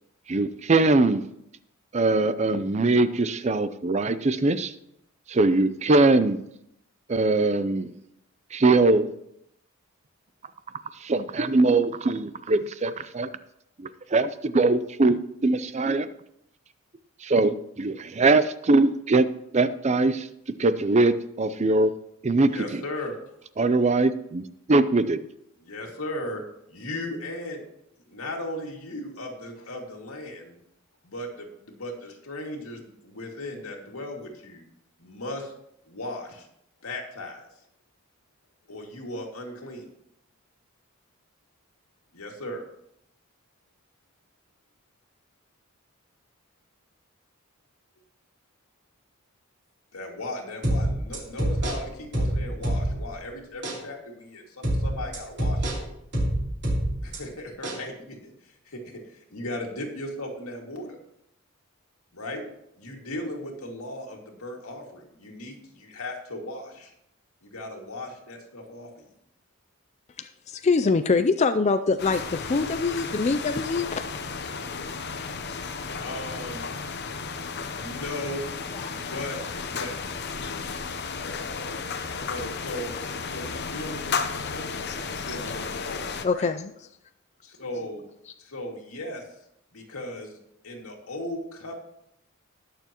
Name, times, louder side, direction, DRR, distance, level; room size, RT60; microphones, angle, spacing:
voice 1, 0.3-1.2 1.9-4.7 5.3-6.4 7.1-7.9 8.5-9.1 11.0-13.3 13.8-16.1 17.2-19.3 19.5-20.3 20.6-21.9 22.2-22.8 23.6-25.2, right 2 dB, 30° right, 13 dB, 0.5 m, -22 dB
voice 2, 22.4-23.2 25.6-26.4 26.7-27.6 28.1-30.6 31.0-34.7 35.0-35.5 35.9-36.5 36.8-37.5 38.7-39.8 42.1-42.6 49.9-55.8 57.0-61.0 62.1-62.4 62.8-66.9 67.4-69.1 76.0-76.7 77.6-78.5 78.9-79.4 79.6-80.0 82.2-86.5 87.4-88.0 88.4-89.2 89.7-90.4 90.6-91.7, left 1 dB, 90° left, 0 dB, 2.3 m, -37 dB
sound 1, 50.6-53.2 53.6-53.8 54.6-57.2 57.6-57.8, right 1 dB, 55° right, 3.4 m, -26 dB
voice 3, 70.2-73.9 78.8-79.0 85.3-85.4 86.2-86.7, left 4 dB, 30° left, 9 dB, 0.4 m, -24 dB
sound 2, 72.0-86.3, left 5 dB, 50° left, 0.8 m, -33 dB
19.5 x 6.9 x 3.0 m, 0.76 s
head